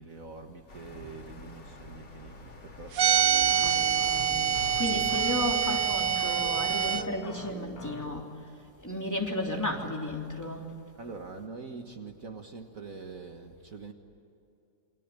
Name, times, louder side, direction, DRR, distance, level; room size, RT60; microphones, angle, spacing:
voice 1, 0.0-4.0 11.0-13.9, right 4 dB, 55° right, 4 dB, 1.9 m, -44 dB
sound 1, 0.7-7.1, left 1 dB, 85° left, 3.4 m, -43 dB
sound 2, 3.0-7.0, right 8 dB, 75° right, 1.7 m, -26 dB
sound 3, 3.1-8.2, left 5 dB, 55° left, 1.9 m, -44 dB
voice 2, 3.6-8.3 8.8-10.7, left 1 dB, 10° left, 0 dB, 3.3 m, -34 dB
28.5 x 24.0 x 8.6 m, 2.8 s
omnidirectional pair, 1.9 m